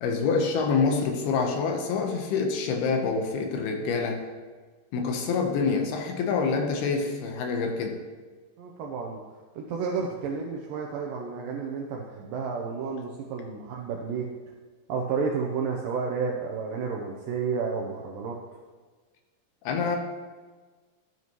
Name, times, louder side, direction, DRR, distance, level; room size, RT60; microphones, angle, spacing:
voice 1, 0.0-4.2 4.9-8.0 19.7-20.0, left 5 dB, 75° left, 3 dB, 2.8 m, -26 dB
voice 2, 8.6-9.2 9.6-14.3 14.9-18.4, right 5 dB, 85° right, -1 dB, 2.0 m, -31 dB
12.0 x 8.2 x 3.1 m, 1.4 s
omnidirectional pair, 4.9 m